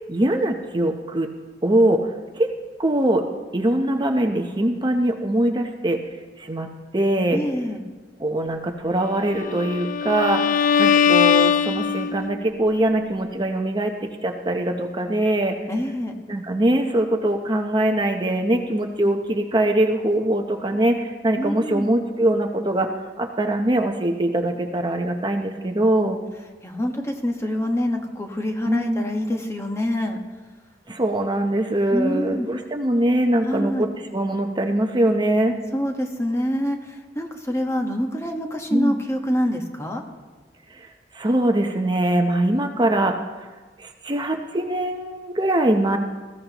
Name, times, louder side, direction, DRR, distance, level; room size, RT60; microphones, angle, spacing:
voice 1, 0.1-1.3 1.6-2.0 2.4-2.5 2.8-3.2 3.5-6.0 6.4-6.7 6.9-7.4 8.2-10.5 10.8-13.9 14.2-15.6 16.3-26.2 28.7-29.1 30.9-35.6 38.7-39.0 41.1-43.1 43.8-46.0, right 1 dB, 25° right, 4 dB, 0.8 m, -22 dB
voice 2, 7.3-7.8 15.7-16.1 21.3-21.9 26.6-30.2 31.9-32.5 33.4-33.9 35.7-36.8 37.1-40.0, equal, 15° left, 2 dB, 1.3 m, -25 dB
Bowed string instrument, 9.3-12.4, left 7 dB, 50° left, 0.4 m, -20 dB
19.5 x 15.0 x 3.0 m, 1.3 s
head